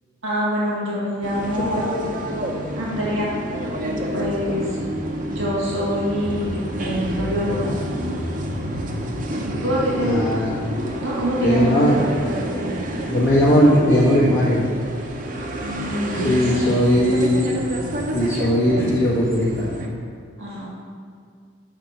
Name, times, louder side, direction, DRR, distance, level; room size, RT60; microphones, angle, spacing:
voice 1, 0.2-1.9 2.8-3.4 3.8-4.8 5.3-7.7 9.4-10.5 11.0-12.8 15.6-17.0 20.4-20.7, equal, 75° right, -6 dB, 1.8 m, -25 dB
sound 1, 1.2-19.9, equal, 40° right, 0.7 m, -28 dB
voice 2, 10.0-10.5 11.4-11.9 13.0-14.6 16.1-17.4 18.1-19.6, equal, 70° left, -10 dB, 1.6 m, -18 dB
5.8 x 4.9 x 6.0 m, 2.2 s
head